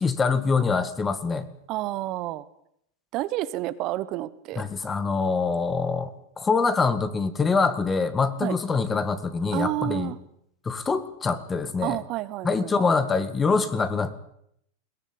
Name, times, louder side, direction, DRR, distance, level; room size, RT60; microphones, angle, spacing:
voice 1, 0.0-1.5 4.6-10.1 10.7-12.0 12.4-14.1, left 4 dB, 15° left, 13 dB, 1.9 m, -24 dB
voice 2, 1.7-2.5 3.1-4.6 8.4-8.6 9.5-10.2 11.8-12.9, right 16 dB, 45° right, 14 dB, 1.2 m, -30 dB
21.5 x 18.0 x 8.8 m, 0.71 s
supercardioid pair, 135°, 0 cm